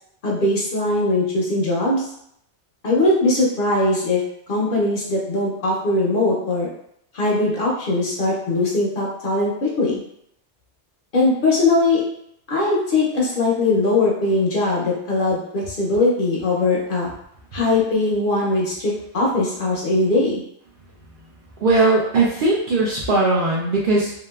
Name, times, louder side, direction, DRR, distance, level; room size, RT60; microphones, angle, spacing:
voice 1, 0.2-2.0 2.8-4.2 4.5-6.7 7.1-10.0 11.1-12.0 12.5-17.1 17.5-20.4, left 2 dB, 55° left, -4 dB, 0.7 m, -20 dB
voice 2, 21.6-24.1, right 2 dB, 60° right, -4 dB, 0.6 m, -19 dB
2.8 x 2.3 x 2.2 m, 0.73 s
omnidirectional pair, 1.2 m